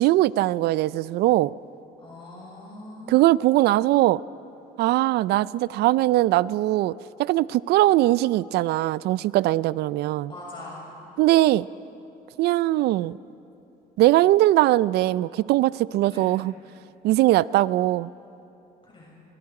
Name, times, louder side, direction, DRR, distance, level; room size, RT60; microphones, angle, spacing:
voice 1, 0.0-1.5 3.1-4.2 4.8-10.3 11.2-11.7 12.4-13.2 14.0-16.5 17.0-18.1, right 16 dB, 75° right, 20 dB, 0.4 m, -21 dB
voice 2, 2.0-3.2 10.3-10.9 16.1-16.3 18.8-19.1, left 2 dB, 30° left, -5 dB, 6.5 m, -42 dB
27.5 x 23.5 x 4.8 m, 2.9 s
cardioid pair, 110°, 17 cm